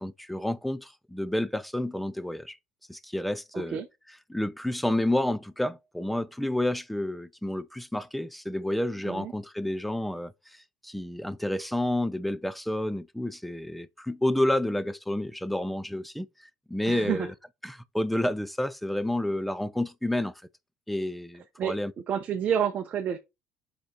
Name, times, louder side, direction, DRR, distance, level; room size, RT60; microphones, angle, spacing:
voice 1, 0.0-2.6 2.9-3.8 4.3-10.3 10.8-16.3 16.7-17.3 17.6-20.3 20.9-21.9, left 1 dB, ahead, 0.4 m, -29 dB
voice 2, 3.5-3.9 9.0-9.3 16.9-17.3 21.6-21.8 22.1-23.2, right 9 dB, 30° right, 0.7 m, -29 dB
5.4 x 5.0 x 4.4 m
cardioid pair, 155°, 4 cm